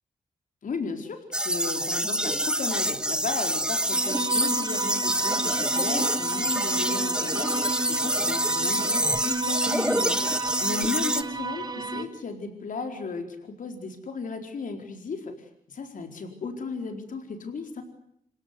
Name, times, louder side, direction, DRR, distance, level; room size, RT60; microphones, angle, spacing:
voice 1, 0.6-10.2 10.6-15.3 15.7-17.8, left 4 dB, 70° left, 5 dB, 4.5 m, -35 dB
sound 1, 1.3-11.2, right 1 dB, 5° right, 1.3 m, -26 dB
sound 2, 3.9-12.0, right 3 dB, 30° right, 2.8 m, -33 dB
28.0 x 17.0 x 9.7 m, 0.72 s
cardioid pair, 95°, 14 cm